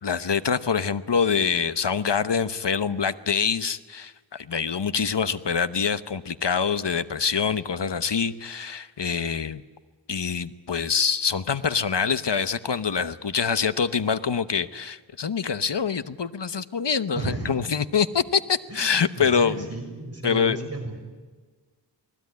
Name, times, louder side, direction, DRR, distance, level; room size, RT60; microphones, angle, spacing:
voice 1, 0.0-9.6 10.1-19.6 20.2-20.6, left 6 dB, 65° left, 13 dB, 1.0 m, -25 dB
voice 2, 17.1-17.5 18.7-21.0, right 2 dB, 35° right, 3 dB, 5.7 m, -33 dB
28.5 x 19.5 x 9.6 m, 1.4 s
wide cardioid pair, 55°, 44 cm